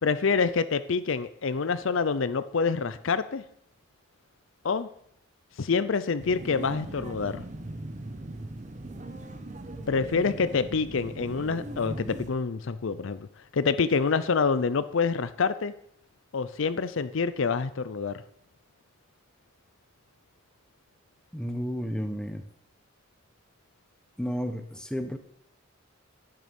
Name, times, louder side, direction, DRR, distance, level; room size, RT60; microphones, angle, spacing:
voice 1, 0.0-3.4 4.6-4.9 5.6-7.4 9.9-13.3 13.5-15.7 16.3-18.2, left 5 dB, 70° left, 14 dB, 0.5 m, -27 dB
sound 1, 6.2-12.3, right 1 dB, 35° right, 1.0 m, -39 dB
voice 2, 21.3-22.4 24.2-25.2, equal, 5° left, 8 dB, 0.9 m, -32 dB
10.5 x 9.1 x 5.3 m, 0.69 s
head